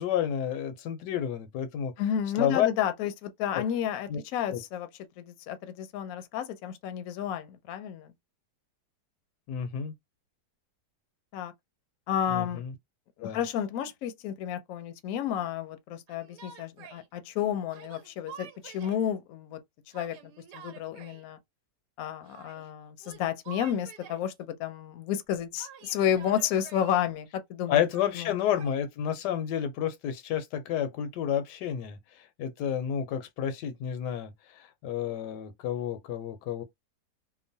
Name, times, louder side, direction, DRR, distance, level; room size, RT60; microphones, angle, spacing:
voice 1, 0.0-1.9 2.3-2.7 3.5-3.6 4.1-4.2 4.5-4.6 9.5-9.9 12.3-12.7 13.2-13.4 27.7-36.6, left 9 dB, 90° left, 1.2 m, -30 dB
voice 2, 2.0-4.9 5.2-8.1 11.3-11.5 12.1-12.6 13.2-19.6 19.9-21.4 22.0-27.8 28.2-28.3, left 9 dB, 70° left, 0.9 m, -31 dB
Yell, 16.1-17.1 17.7-19.1 19.9-21.2 22.2-22.7 23.0-24.3 25.6-27.0 27.9-28.8, right 7 dB, 90° right, 1.3 m, -49 dB
2.9 x 2.2 x 2.6 m
omnidirectional pair, 1.8 m